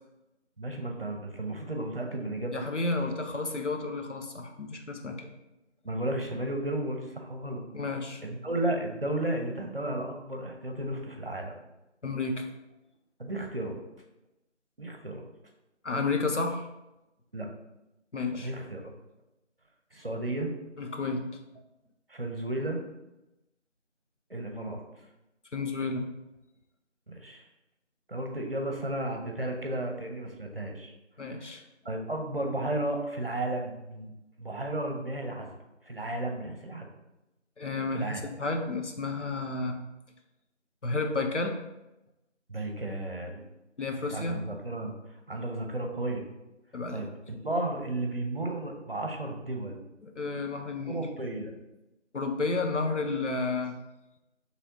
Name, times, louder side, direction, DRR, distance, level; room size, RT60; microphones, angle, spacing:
voice 1, 0.6-2.5 5.8-7.6 8.2-11.5 13.2-13.8 14.8-15.2 17.3-17.5 18.4-18.8 19.9-20.5 22.1-22.8 24.3-24.8 27.1-27.4 28.1-30.9 31.4-31.6 31.8-34.1 34.4-35.5 35.8-36.9 37.9-38.2 42.5-43.4 44.0-44.9 45.3-46.2 46.9-49.8 50.9-51.5, right 1 dB, 50° right, 3 dB, 0.8 m, -33 dB
voice 2, 2.5-5.3 7.7-8.2 12.0-12.5 15.8-16.7 18.1-18.5 20.8-21.3 25.5-26.0 31.2-31.6 37.6-39.8 40.8-41.5 43.8-44.4 46.7-47.1 50.0-51.1 52.1-53.7, left 3 dB, 75° left, 4 dB, 0.8 m, -31 dB
5.4 x 3.2 x 2.8 m, 0.94 s
figure-of-eight pair, 175°, 36 cm